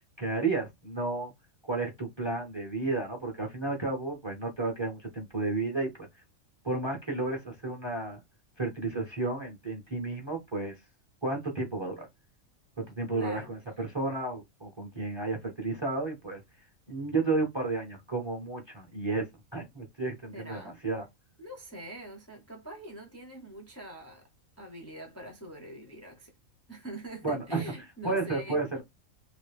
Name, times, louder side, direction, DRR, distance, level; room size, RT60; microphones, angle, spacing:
voice 1, 0.2-1.3 1.7-5.9 6.6-8.2 8.6-10.8 11.2-12.1 12.8-16.4 16.9-19.2 19.5-21.0 27.2-27.6 28.0-28.8, right 3 dB, 25° right, 0.8 m, -32 dB
voice 2, 13.1-13.5 20.3-20.8 21.4-24.3 24.6-26.3 26.7-28.6, right 1 dB, 15° left, 0.6 m, -44 dB
2.9 x 2.7 x 3.3 m
omnidirectional pair, 1.4 m